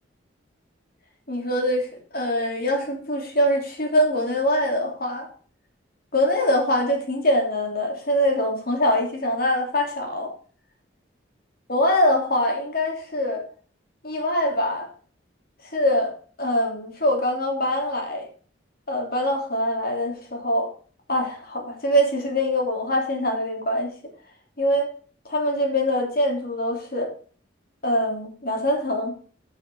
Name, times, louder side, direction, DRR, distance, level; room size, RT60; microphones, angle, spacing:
voice 1, 1.3-5.3 6.1-10.3 11.7-13.4 14.0-14.9 15.7-16.1 16.4-18.3 18.9-20.7 21.1-23.9 24.6-24.9 25.2-27.1 27.8-29.1, left 1 dB, 55° left, 1 dB, 3.1 m, -23 dB
11.5 x 5.8 x 5.4 m, 0.43 s
head